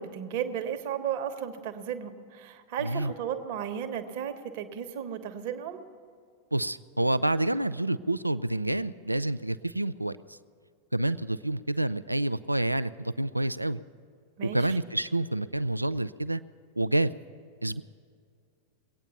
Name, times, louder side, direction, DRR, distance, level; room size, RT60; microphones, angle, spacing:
voice 1, 0.0-5.8 14.4-14.8, right 8 dB, 50° right, 7 dB, 1.1 m, -34 dB
voice 2, 6.5-10.4 10.9-13.8 14.4-16.4 16.8-17.1 17.6-17.8, right 1 dB, 85° right, 16 dB, 0.3 m, -28 dB
21.5 x 9.0 x 6.9 m, 2.2 s
figure-of-eight pair, 90°, 0 cm